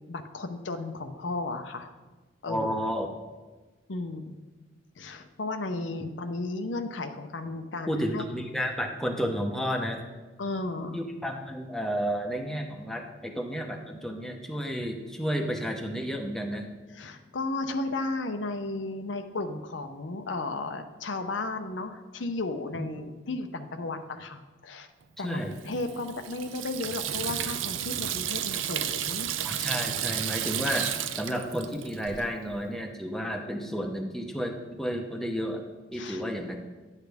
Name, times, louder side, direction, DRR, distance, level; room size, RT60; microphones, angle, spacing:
voice 1, 0.1-1.9 2.4-2.7 3.9-4.4 5.0-8.2 10.4-11.0 16.9-24.9 25.2-29.7 35.9-36.2, left 2 dB, 75° left, 7 dB, 0.7 m, -34 dB
voice 2, 2.5-3.1 7.9-10.0 10.9-16.7 22.8-22.9 25.2-25.6 29.4-35.6 35.9-36.6, equal, ahead, 2 dB, 0.7 m, -31 dB
Water tap faucet / Sink (filling or washing), 25.5-32.3, right 10 dB, 90° right, 0.5 m, -32 dB
10.5 x 8.2 x 3.4 m, 1.3 s
head